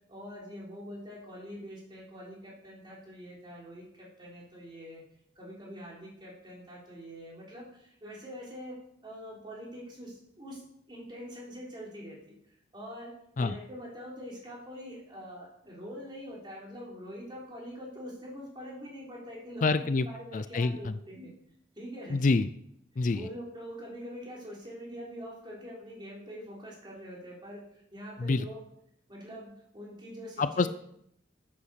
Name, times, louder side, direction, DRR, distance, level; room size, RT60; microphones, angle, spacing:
voice 1, 0.1-5.0 5.4-10.6 10.9-12.3 12.7-21.3 21.8-22.2 23.1-28.6 29.1-30.7, equal, 25° right, -4 dB, 3.8 m, -44 dB
voice 2, 19.6-20.1 20.3-21.0 22.1-22.5 23.0-23.3 28.2-28.4 30.4-30.7, left 3 dB, 40° left, 13 dB, 0.4 m, -26 dB
9.4 x 8.6 x 6.6 m, 0.74 s
head